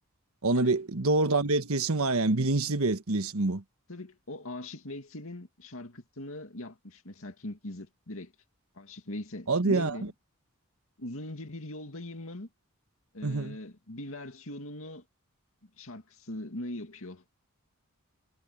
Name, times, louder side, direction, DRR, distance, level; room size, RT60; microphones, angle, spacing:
voice 1, 0.4-3.6 9.5-10.0 13.2-13.6, right 2 dB, 75° right, 1.4 m, -26 dB
voice 2, 3.9-8.3 8.8-10.1 11.0-12.5 13.1-15.0 15.8-17.4, left 1 dB, 65° left, 2.4 m, -41 dB
head